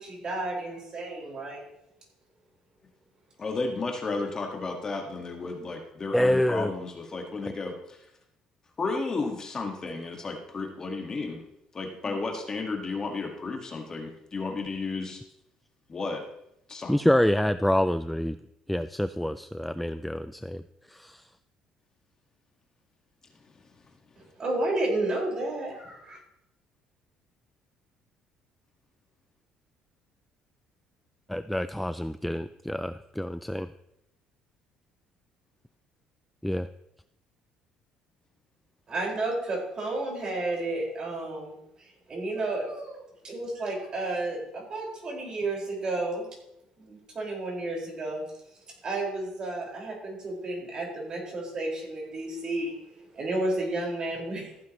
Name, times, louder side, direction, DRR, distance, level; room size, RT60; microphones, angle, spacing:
voice 1, 0.0-1.6 24.4-26.2 38.9-43.0 43.2-46.2 46.8-48.2 48.8-52.7 53.1-54.5, right 2 dB, 40° right, -2 dB, 5.2 m, -32 dB
voice 2, 3.4-7.7 8.8-11.4 11.7-15.2 15.9-16.2 16.7-16.9, left 3 dB, 30° left, 2 dB, 1.8 m, -33 dB
voice 3, 6.1-6.7 12.1-12.2 16.9-18.4 18.7-20.6 20.9-21.2 31.3-33.7 36.4-36.7, left 1 dB, ahead, 12 dB, 0.3 m, -26 dB
15.0 x 9.3 x 3.1 m, 0.80 s
cardioid pair, 105°, 2 cm